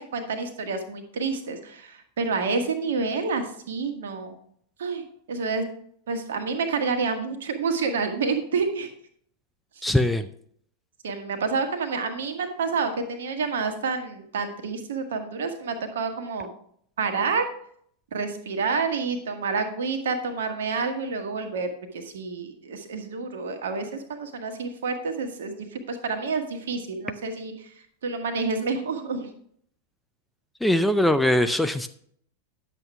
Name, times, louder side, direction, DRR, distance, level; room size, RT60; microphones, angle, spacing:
voice 1, 0.0-4.3 4.8-5.6 6.1-8.9 9.8-9.9 11.0-16.5 17.0-17.4 18.1-27.7 28.0-29.3, right 4 dB, 60° right, 6 dB, 1.4 m, -29 dB
voice 2, 9.8-10.3 30.6-31.9, left 1 dB, 5° left, 9 dB, 0.4 m, -21 dB
10.5 x 7.7 x 3.4 m, 0.64 s
figure-of-eight pair, 90°, 0 cm